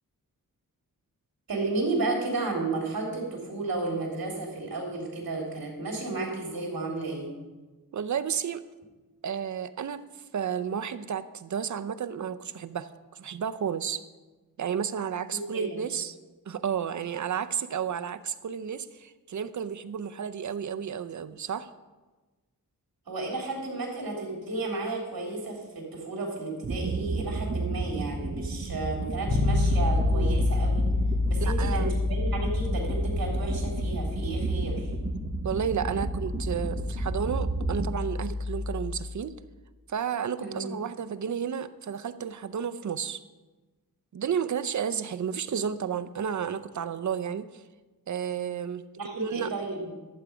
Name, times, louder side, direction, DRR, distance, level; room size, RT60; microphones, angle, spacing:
voice 1, 1.5-7.3 15.3-15.8 23.1-30.8 31.3-34.9 40.4-40.6 49.0-49.9, right 3 dB, 70° right, -1 dB, 3.3 m, -33 dB
voice 2, 7.9-8.6 9.2-10.0 10.3-14.0 14.6-16.2 16.5-21.7 30.1-30.5 31.4-32.0 35.4-39.4 39.9-43.2 44.1-47.6 48.1-48.8 49.2-49.5, right 7 dB, 55° right, 11 dB, 0.6 m, -32 dB
sound 1, 26.6-37.9, right 3 dB, 35° right, 1.1 m, -33 dB
Bass guitar, 29.3-39.1, left 3 dB, 30° left, 1.1 m, -28 dB
12.0 x 8.1 x 5.0 m, 1.2 s
wide cardioid pair, 100°, 36 cm